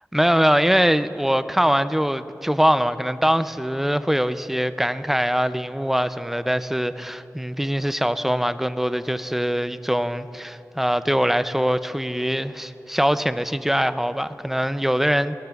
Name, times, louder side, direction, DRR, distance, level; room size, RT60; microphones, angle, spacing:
voice 1, 0.1-15.4, equal, 5° right, 13 dB, 0.4 m, -22 dB
20.0 x 17.5 x 2.3 m, 3.0 s
wide cardioid pair, 95°, 6 cm